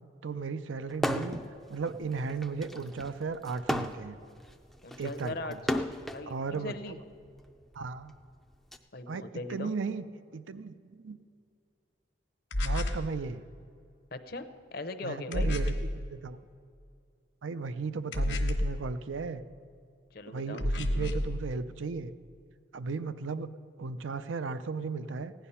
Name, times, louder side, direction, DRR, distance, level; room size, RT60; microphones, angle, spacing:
voice 1, 0.2-1.4 1.7-4.2 5.0-5.6 6.3-6.7 7.7-8.1 9.1-9.2 9.5-10.0 10.3-11.2 12.6-13.4 15.0-16.4 17.4-19.4 20.3-22.1 22.7-23.5 23.8-25.3, right 4 dB, 85° right, 13 dB, 0.5 m, -35 dB
sound 1, 0.9-1.5 1.9-6.2 7.1-8.8, equal, ahead, 0.4 m, -34 dB
voice 2, 4.8-7.0 8.9-9.7 14.1-14.4 14.7-15.6 20.1-20.7, left 2 dB, 50° left, 9 dB, 0.7 m, -39 dB
sound 2, 12.5-13.1 15.3-15.9 18.1-18.8 20.6-21.3, left 1 dB, 70° left, 1.2 m, -29 dB
16.0 x 10.5 x 5.6 m, 2.4 s
head